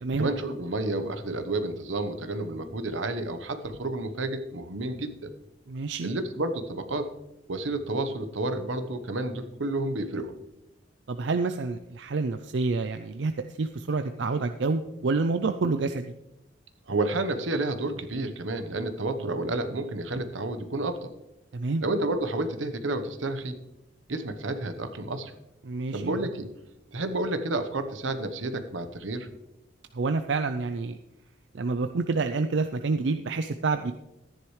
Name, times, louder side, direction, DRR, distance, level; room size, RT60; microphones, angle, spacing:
voice 1, 0.2-5.3 6.0-7.1 7.5-10.3 16.9-21.1 21.8-23.6 24.1-25.3 25.9-26.5 26.9-29.3, right 2 dB, 90° right, 9 dB, 1.1 m, -30 dB
voice 2, 5.7-6.1 11.1-16.1 21.5-21.8 25.6-26.1 29.9-31.0 31.5-33.9, right 3 dB, 70° right, 8 dB, 0.5 m, -28 dB
14.0 x 10.0 x 3.2 m, 0.93 s
head